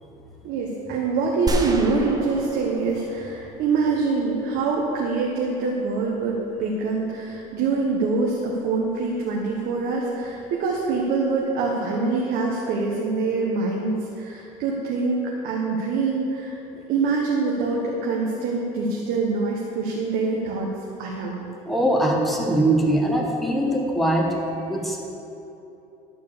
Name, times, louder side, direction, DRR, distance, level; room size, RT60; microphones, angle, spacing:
voice 1, 0.4-15.2 15.4-16.6 16.9-20.7 21.0-21.5, right 4 dB, 75° right, -2 dB, 1.3 m, -25 dB
sound 1, 1.5-4.4, right 1 dB, 25° right, 1.0 m, -31 dB
voice 2, 21.6-25.1, right 1 dB, ahead, -1 dB, 1.5 m, -22 dB
11.5 x 4.8 x 6.7 m, 2.9 s
supercardioid pair, 100°, 16 cm